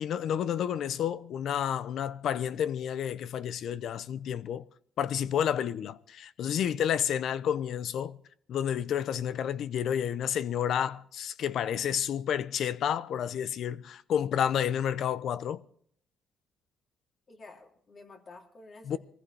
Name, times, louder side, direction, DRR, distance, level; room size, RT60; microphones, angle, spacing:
voice 1, 0.0-4.7 5.0-8.2 8.5-15.6 18.8-19.0, left 9 dB, 70° left, 0.7 m, -30 dB
voice 2, 17.3-19.0, left 3 dB, 45° left, 3.1 m, -50 dB
23.0 x 15.0 x 3.4 m
cardioid pair, 90°, 0 cm